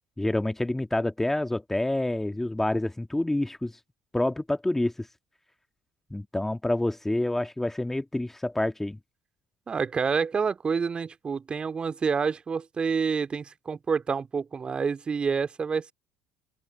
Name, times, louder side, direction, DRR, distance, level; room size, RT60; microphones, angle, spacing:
voice 1, 0.2-3.8 4.1-5.1 6.1-9.0, left 1 dB, 10° left, 1.9 m, -27 dB
voice 2, 9.7-15.9, right 5 dB, 35° right, 2.7 m, -28 dB
open air
hypercardioid pair, 55°, 3 cm